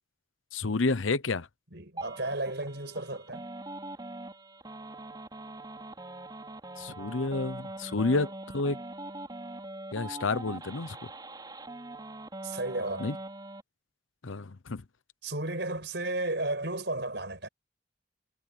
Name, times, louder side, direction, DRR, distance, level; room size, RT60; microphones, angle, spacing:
voice 1, 0.5-1.5 6.8-8.8 9.9-11.0 13.0-13.2 14.2-14.8, left 3 dB, 85° left, 0.9 m, -30 dB
voice 2, 1.7-3.5 12.4-13.1 15.2-17.5, right 2 dB, 60° right, 6.3 m, -33 dB
sound 1, 2.0-13.6, right 2 dB, 20° right, 4.7 m, -42 dB
head